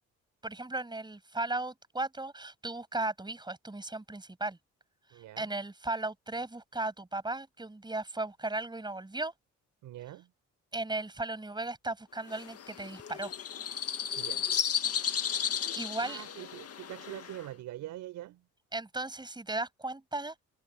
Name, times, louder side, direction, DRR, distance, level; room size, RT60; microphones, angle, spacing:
voice 1, 0.4-4.6 5.4-9.3 10.7-13.3 15.4-16.2 18.7-20.4, right 2 dB, 15° right, 6.7 m, -36 dB
voice 2, 5.1-5.5 9.8-10.3 14.2-14.5 16.0-18.5, right 14 dB, 90° right, 4.2 m, -44 dB
sound 1, 12.3-17.5, left 8 dB, 50° left, 1.8 m, -34 dB
open air
cardioid pair, 90°, 30 cm